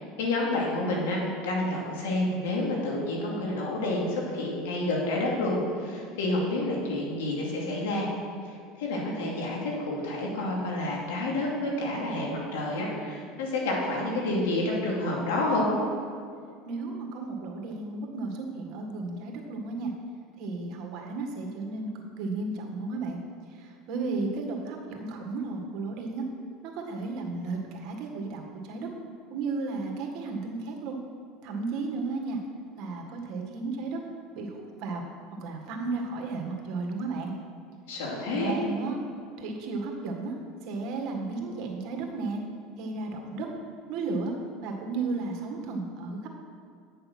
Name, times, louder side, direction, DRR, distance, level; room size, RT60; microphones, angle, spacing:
voice 1, 0.0-8.1 8.4-15.7 37.9-38.6, left 2 dB, 85° left, -2 dB, 2.6 m, -29 dB
voice 2, 16.6-19.9 20.4-21.9 22.2-23.2 23.6-26.2 26.6-28.9 29.3-31.0 31.4-32.4 32.8-34.0 34.3-35.0 35.4-37.3 38.3-39.0 39.4-40.3 40.7-42.4 42.8-43.5 43.9-44.3 44.6-46.3, right 3 dB, 60° right, 2 dB, 1.9 m, -33 dB
9.5 x 6.6 x 6.1 m, 2.2 s
supercardioid pair, 110°, 0 cm